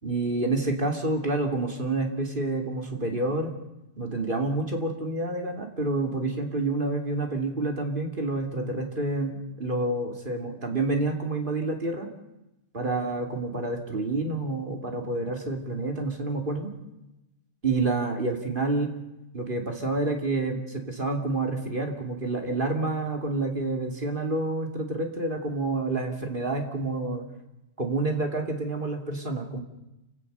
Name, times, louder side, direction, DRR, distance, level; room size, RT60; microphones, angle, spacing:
voice 1, 0.0-3.5 4.0-12.1 12.7-16.7 17.6-18.9 19.3-27.3 27.8-29.6, right 2 dB, 50° right, 3 dB, 2.9 m, -28 dB
28.0 x 17.0 x 6.8 m, 0.96 s
omnidirectional pair, 1.1 m